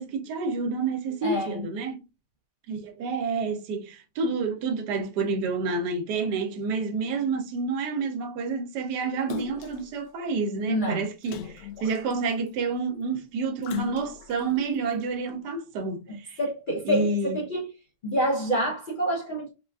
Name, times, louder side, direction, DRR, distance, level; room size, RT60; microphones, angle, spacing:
voice 1, 0.0-2.0 2.7-16.4 16.8-17.4, right 4 dB, 85° right, 1.3 m, -29 dB
voice 2, 1.2-1.7 10.7-11.1 16.1-17.7 18.0-19.5, equal, 60° left, 0.5 m, -27 dB
Splash splatter, 9.3-9.9 11.2-12.5 13.6-14.4 15.0-15.1, left 8 dB, 85° left, 1.2 m, -37 dB
3.9 x 2.4 x 2.2 m
omnidirectional pair, 1.8 m